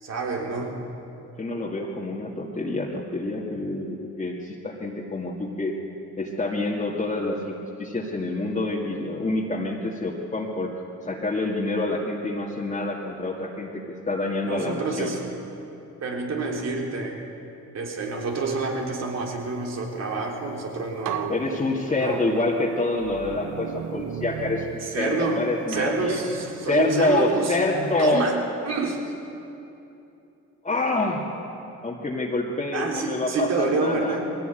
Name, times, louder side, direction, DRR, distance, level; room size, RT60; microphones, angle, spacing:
voice 1, 0.0-0.8 14.4-15.2 16.0-17.2 17.7-21.3 22.0-22.2 24.8-25.4 25.7-27.6 28.0-28.4 28.7-29.0 32.7-34.3, right 3 dB, 60° right, 1 dB, 3.6 m, -27 dB
voice 2, 1.4-5.8 6.2-10.7 11.0-15.2 21.3-26.2 26.6-28.3 30.6-31.2 31.8-34.2, left 2 dB, 25° left, -4 dB, 2.3 m, -27 dB
sound 1, 20.5-20.6 21.0-22.3 23.0-25.3 25.7-27.5, right 9 dB, 85° right, 1.0 m, -37 dB
20.5 x 16.0 x 9.2 m, 2.9 s
cardioid pair, 90°, 30 cm